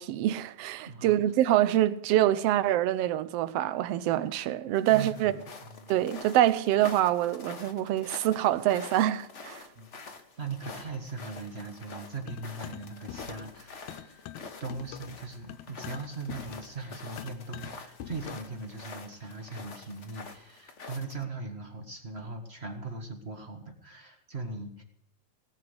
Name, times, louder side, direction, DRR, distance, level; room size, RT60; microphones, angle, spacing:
voice 1, 0.0-5.3 5.9-9.7, right 13 dB, 75° right, 1.5 m, -25 dB
voice 2, 0.8-1.2 4.9-5.9 9.7-14.3 14.6-24.8, right 3 dB, 30° right, 1.2 m, -40 dB
sound 1, 4.7-21.2, left 4 dB, 50° left, 0.8 m, -47 dB
sound 2, 12.3-13.6 13.9-18.6, left 11 dB, 85° left, 2.2 m, -44 dB
18.5 x 7.4 x 8.0 m
omnidirectional pair, 3.3 m